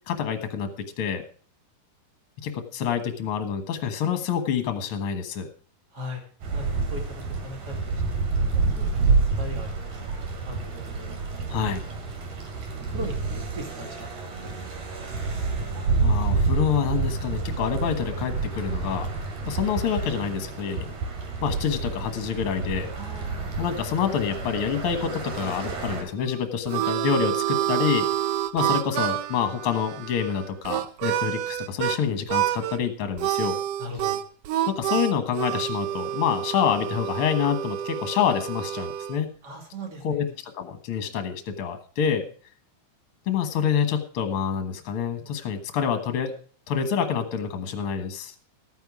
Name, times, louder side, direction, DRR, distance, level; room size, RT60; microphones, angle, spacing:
voice 1, 0.1-0.7 1.0-1.2 2.4-5.5 11.5-11.8 16.0-19.1 19.5-20.9 21.4-22.9 23.6-28.1 28.5-33.6 34.7-39.3 40.0-40.3 40.5-42.2 43.3-46.3 46.7-48.3, left 7 dB, 50° left, 7 dB, 2.0 m, -27 dB
sound 1, 6.4-26.0, right 4 dB, 70° right, 3.7 m, -28 dB
voice 2, 6.5-8.0 8.8-9.7 9.9-10.1 10.5-11.1 11.5-12.0 12.7-14.1 14.4-15.2 22.9-23.5 33.8-34.2 39.4-40.3, left 1 dB, 35° right, 2 dB, 2.9 m, -40 dB
Harmonica, 26.2-32.0 32.3-32.8 33.2-39.2, right 13 dB, 90° right, 1.4 m, -28 dB
13.5 x 9.2 x 4.8 m, 0.42 s
omnidirectional pair, 3.6 m